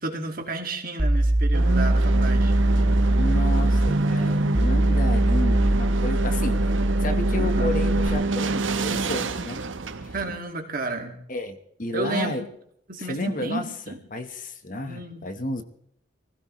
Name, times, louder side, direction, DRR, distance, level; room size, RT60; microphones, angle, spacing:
voice 1, 0.0-2.5 7.4-7.7 10.1-11.2 11.9-12.4 12.9-14.0 14.9-15.3, right 2 dB, 50° right, 3 dB, 2.3 m, -32 dB
sound 1, 1.0-8.1, right 1 dB, 25° right, 0.8 m, -22 dB
sound 2, 1.5-10.4, right 3 dB, 85° right, 1.0 m, -27 dB
voice 2, 3.2-9.6 10.0-10.1 11.3-12.4 13.0-13.6 14.1-15.6, left 1 dB, 45° left, 7 dB, 1.3 m, -31 dB
24.0 x 16.0 x 3.2 m, 0.68 s
head